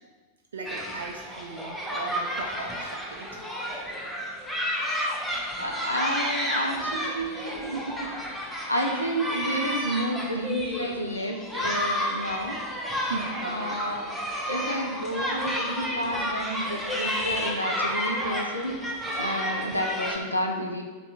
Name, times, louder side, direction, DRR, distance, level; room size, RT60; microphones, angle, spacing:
voice 1, 0.5-3.3 4.8-5.3 6.9-7.3 7.7-8.4 13.1-13.8 19.3-19.7, right 4 dB, 65° right, 1 dB, 0.3 m, -38 dB
sound 1, 0.6-20.2, equal, ahead, 0.6 m, -31 dB
voice 2, 5.6-7.8 8.7-12.6 13.4-18.8 19.2-20.8, equal, 85° left, 1 dB, 0.4 m, -30 dB
3.4 x 2.6 x 4.1 m, 1.4 s
figure-of-eight pair, 90°, 0 cm